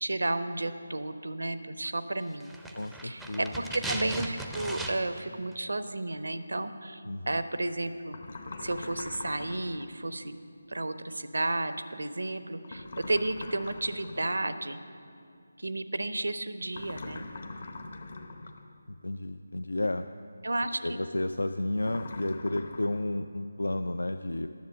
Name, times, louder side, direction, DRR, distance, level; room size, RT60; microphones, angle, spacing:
voice 1, 0.0-2.6 3.0-8.2 8.6-10.4 10.7-14.8 15.6-17.3 20.4-21.0, right 2 dB, 65° right, 11 dB, 0.6 m, -32 dB
sound 1, 2.4-5.3 5.5-5.6, right 1 dB, ahead, 0.5 m, -37 dB
voice 2, 2.7-3.6 7.1-7.4 18.9-20.1 20.8-24.5, left 1 dB, 70° left, 9 dB, 0.3 m, -32 dB
sound 2, 8.1-9.9 12.6-14.3 16.7-18.7 21.8-23.0, left 3 dB, 45° left, 0.8 m, -42 dB
10.5 x 7.2 x 7.3 m, 2.4 s
figure-of-eight pair, 155°, 0 cm